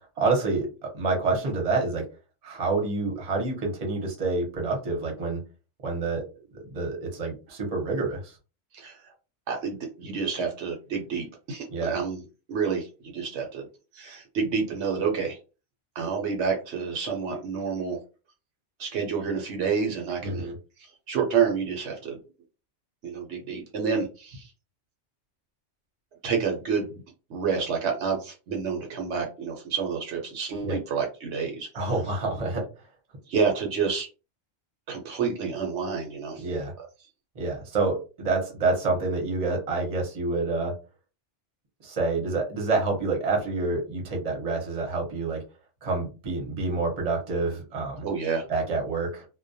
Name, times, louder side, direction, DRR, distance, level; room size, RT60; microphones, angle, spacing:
voice 1, 0.2-0.7 0.9-2.0 2.4-5.4 5.8-6.2 6.5-8.3 11.7-12.0 20.2-20.5 30.6-30.8 31.7-32.6 36.4-36.7 37.3-40.7 41.8-45.4 45.8-48.0 48.5-49.3, right 3 dB, 35° right, 0 dB, 0.8 m, -27 dB
voice 2, 9.5-12.2 12.5-12.9 13.1-13.7 13.9-15.4 16.0-18.0 18.8-20.5 21.1-22.2 23.0-24.5 26.2-27.0 27.3-31.9 33.3-34.1 34.9-36.4 48.0-48.4, right 6 dB, 75° right, 2 dB, 0.9 m, -29 dB
2.2 x 2.1 x 2.6 m, 0.32 s
omnidirectional pair, 1.2 m